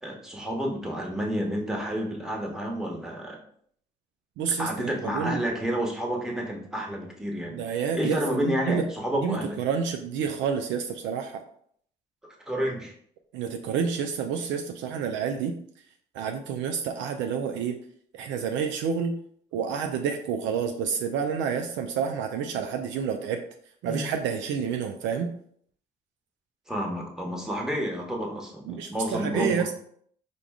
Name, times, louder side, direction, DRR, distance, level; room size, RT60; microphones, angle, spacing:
voice 1, 0.0-3.4 4.6-7.6 7.9-9.6 12.5-12.9 23.8-24.0 26.7-29.7, equal, 5° right, -1 dB, 1.2 m, -30 dB
voice 2, 4.4-5.4 7.5-8.8 9.2-11.4 13.3-15.5 16.1-17.8 18.1-19.1 19.5-23.4 23.8-25.3 28.7-29.7, right 6 dB, 65° right, 5 dB, 0.4 m, -29 dB
4.7 x 2.2 x 3.5 m, 0.63 s
hypercardioid pair, 45°, 21 cm